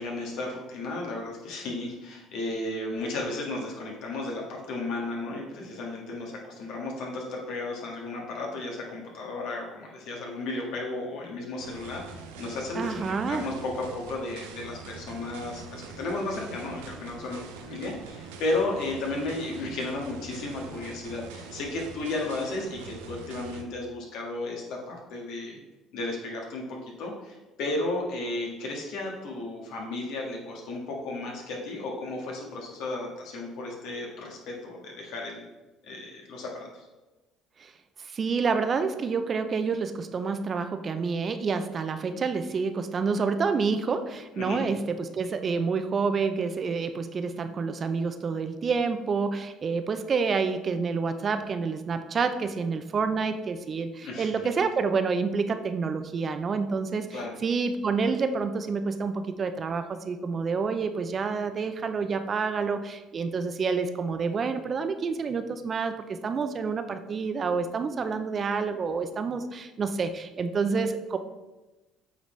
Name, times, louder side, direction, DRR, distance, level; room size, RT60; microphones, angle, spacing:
voice 1, 0.0-25.6 25.9-35.4 35.8-36.8 44.4-44.7 54.0-54.3 57.1-57.3, left 2 dB, 70° left, -1 dB, 1.6 m, -34 dB
sound 1, 11.6-23.6, right 4 dB, 90° right, 0.6 m, -44 dB
voice 2, 12.7-13.4 37.6-37.7 38.1-71.2, right 5 dB, 40° right, 9 dB, 0.5 m, -28 dB
8.0 x 3.9 x 3.3 m, 1.1 s
supercardioid pair, 80°, 0 cm